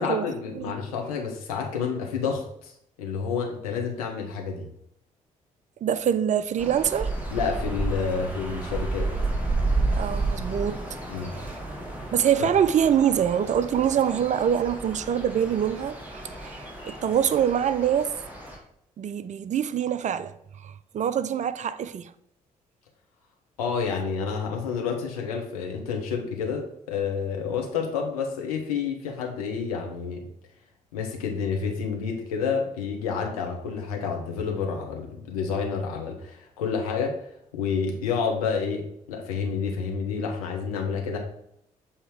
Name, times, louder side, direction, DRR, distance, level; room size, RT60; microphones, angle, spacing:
voice 1, 0.0-2.7 3.0-4.7 7.3-9.1 11.1-11.3 12.4-12.5 23.6-30.2 30.9-37.2 37.5-41.2, left 5 dB, 80° left, 0.9 m, -29 dB
voice 2, 5.8-7.1 10.0-10.8 11.2-11.6 12.1-16.6 16.8-18.1 19.0-20.3 20.6-22.1, right 9 dB, 40° right, 0.4 m, -25 dB
sound 1, 6.6-18.6, right 2 dB, 10° right, 2.0 m, -31 dB
7.1 x 2.9 x 4.9 m
figure-of-eight pair, 40°, 18 cm